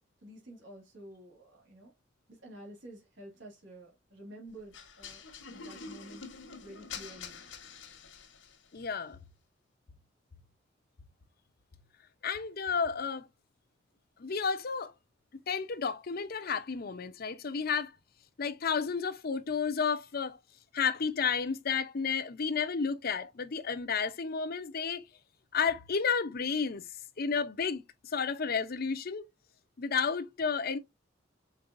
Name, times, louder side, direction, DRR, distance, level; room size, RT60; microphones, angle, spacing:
voice 1, 0.2-1.9 2.3-5.2 5.5-6.3 6.6-7.4, right 1 dB, 80° right, 2.3 m, -50 dB
sound 1, 4.7-8.7, left 5 dB, 85° left, 1.3 m, -46 dB
voice 2, 8.7-9.2 12.2-13.3 14.2-14.9 15.5-17.9 18.4-20.4 20.7-25.0 25.5-26.9 27.2-29.3 29.8-30.8, left 6 dB, 55° left, 0.6 m, -32 dB
5.3 x 3.9 x 2.5 m
head